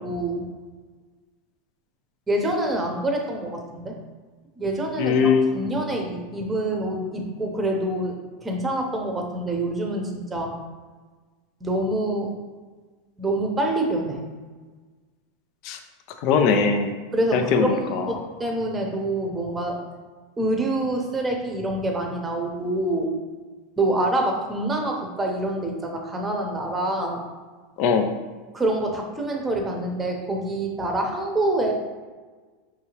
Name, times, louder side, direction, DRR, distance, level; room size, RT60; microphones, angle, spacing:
voice 1, 0.0-0.5 2.3-4.0 4.6-10.5 11.6-12.3 13.2-14.2 17.1-19.8 20.4-23.1 23.8-27.2 28.5-31.8, right 1 dB, 15° right, 2 dB, 0.8 m, -26 dB
voice 2, 5.0-5.6 15.6-15.8 16.2-16.9 17.3-18.2 27.8-28.1, left 5 dB, 55° left, 6 dB, 0.4 m, -21 dB
5.5 x 2.7 x 3.0 m, 1.4 s
supercardioid pair, 125°, 0 cm